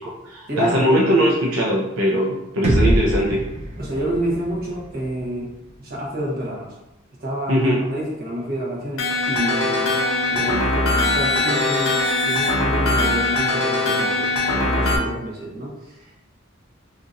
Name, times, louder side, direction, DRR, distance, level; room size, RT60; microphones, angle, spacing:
voice 1, 0.0-3.4 7.5-7.8, equal, 80° right, -3 dB, 0.6 m, -20 dB
sound 1, 2.6-6.6, equal, 30° right, 0.6 m, -25 dB
voice 2, 3.8-5.5 5.8-6.7 7.2-9.9 10.3-12.0 12.2-16.2, right 1 dB, 45° right, -4 dB, 1.0 m, -28 dB
Horror Chase (Loop), 9.0-15.0, left 2 dB, 85° left, 0.6 m, -21 dB
2.9 x 2.5 x 3.9 m, 0.91 s
head